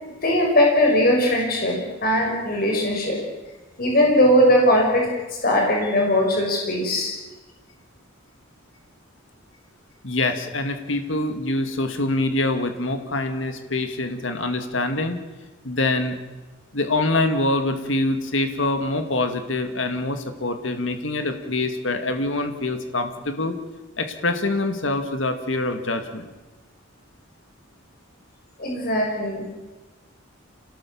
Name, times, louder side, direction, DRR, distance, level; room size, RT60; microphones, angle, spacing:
voice 1, 0.2-3.2 3.8-5.1 5.4-7.1 28.6-29.5, left 1 dB, 50° left, 0 dB, 6.0 m, -19 dB
voice 2, 10.0-15.2 15.6-16.2 16.7-23.6 24.0-26.2, left 2 dB, 70° left, 7 dB, 2.1 m, -25 dB
27.0 x 19.0 x 7.2 m, 1.2 s
head